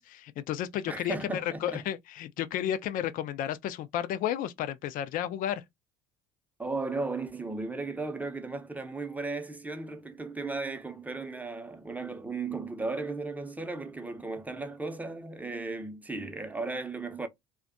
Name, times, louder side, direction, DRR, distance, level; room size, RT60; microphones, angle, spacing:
voice 1, 0.0-5.6, left 11 dB, 50° left, 0.4 m, -32 dB
voice 2, 0.9-1.9 6.6-17.3, right 3 dB, 10° right, 0.7 m, -35 dB
2.5 x 2.2 x 2.4 m
hypercardioid pair, 65°, 18 cm